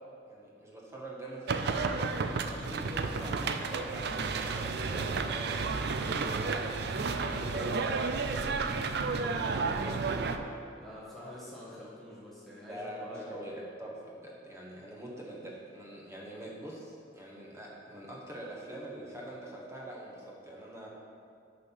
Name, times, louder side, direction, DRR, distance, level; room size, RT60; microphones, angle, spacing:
voice 1, 0.3-6.7 7.2-8.6 8.9-10.2 12.7-20.9, right 1 dB, 15° right, -4 dB, 1.4 m, -44 dB
sound 1, 1.5-10.4, right 4 dB, 65° right, 0.5 m, -32 dB
voice 2, 9.6-9.9 10.8-13.4, left 1 dB, ahead, -8 dB, 1.4 m, -47 dB
6.4 x 5.6 x 6.1 m, 2.3 s
head